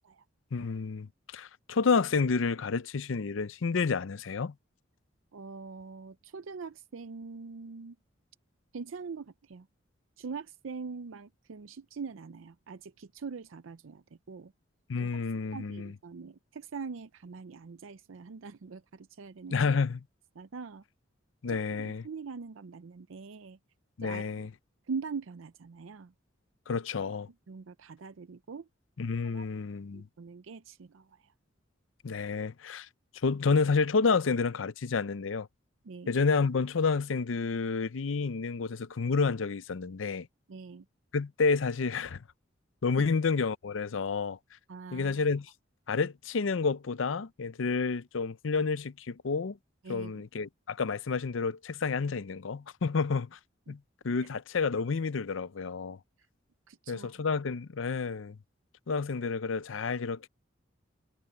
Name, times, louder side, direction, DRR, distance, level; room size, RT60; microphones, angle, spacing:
voice 1, 0.5-4.5 14.9-15.9 19.5-20.0 21.4-22.0 24.0-24.5 26.7-27.3 29.0-30.1 32.0-32.9 33.2-35.5 36.1-40.3 41.1-42.2 42.8-44.4 44.9-45.5 45.9-49.6 49.9-53.4 53.7-53.8 54.0-56.0 56.9-58.4 58.9-60.3, left 4 dB, 80° left, 0.6 m, -30 dB
voice 2, 5.3-8.0 8.7-9.7 10.2-14.5 15.0-15.2 15.5-19.6 20.4-20.8 21.5-23.6 24.0-24.3 24.9-26.1 27.5-28.7 29.2-29.5 29.9-31.3 35.8-36.2 40.5-40.9 43.0-43.1 44.7-45.3 49.8-50.2 53.7-53.8 54.2-54.3 56.7-57.3, right 5 dB, 90° right, 0.5 m, -43 dB
head